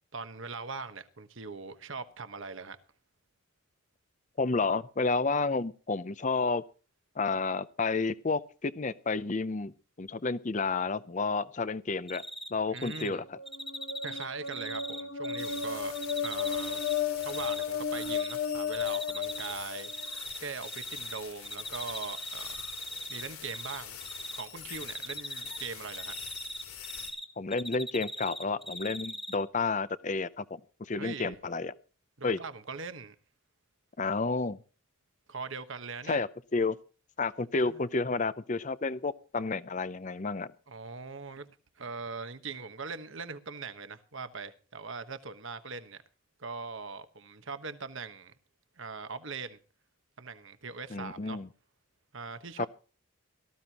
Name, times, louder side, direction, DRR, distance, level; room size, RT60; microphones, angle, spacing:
voice 1, 0.1-2.8 12.7-13.2 14.0-16.0 16.2-16.8 17.2-19.9 20.4-22.6 23.1-24.0 24.3-26.1 31.0-31.4 32.2-33.1 35.3-36.2 37.7-37.8 40.7-41.5 41.8-46.0 46.4-48.3 48.8-49.6 50.2-51.4 52.1-52.7, right 4 dB, 60° right, 1.2 m, -41 dB
voice 2, 4.4-6.6 7.2-9.7 10.0-12.2 12.5-13.4 27.4-31.7 32.2-32.4 34.0-34.6 36.1-36.8 37.2-40.5 50.9-51.5 52.6-52.7, left 3 dB, 35° left, 0.6 m, -31 dB
Cricket, 12.1-12.5 12.8-13.1 13.5-15.6 15.9-17.6 18.0-18.3 18.7-19.5 19.8-21.2 21.4-23.8 24.0-24.4 24.7-27.2 27.5-29.3, equal, ahead, 1.6 m, -39 dB
sound 1, 13.2-20.1, left 7 dB, 55° left, 1.0 m, -34 dB
sound 2, 15.4-27.1, left 8 dB, 85° left, 4.8 m, -45 dB
18.0 x 14.0 x 2.9 m
head